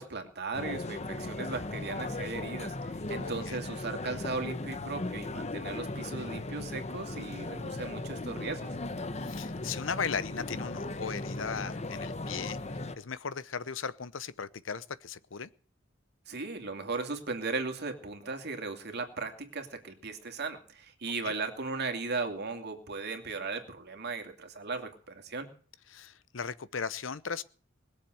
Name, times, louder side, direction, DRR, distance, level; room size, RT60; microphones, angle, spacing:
voice 1, 0.0-8.7 16.3-25.5, right 3 dB, 55° right, 2.6 m, -37 dB
sound 1, 0.5-13.0, left 2 dB, 35° left, 1.0 m, -37 dB
voice 2, 3.2-3.6 9.2-12.6 13.0-15.5 21.2-21.3 25.9-27.4, left 6 dB, 75° left, 0.8 m, -37 dB
20.5 x 7.4 x 7.8 m
head